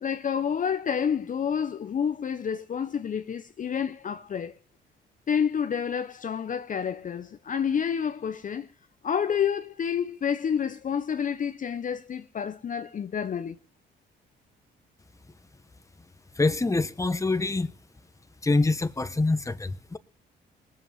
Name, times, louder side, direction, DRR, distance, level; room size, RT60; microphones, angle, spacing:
voice 1, 0.0-4.6 5.3-8.7 9.0-13.6, left 7 dB, 40° left, 0.7 m, -29 dB
voice 2, 16.3-17.7 18.4-20.0, left 3 dB, 15° left, 1.2 m, -25 dB
19.0 x 7.8 x 7.5 m
cardioid pair, 90°, 20 cm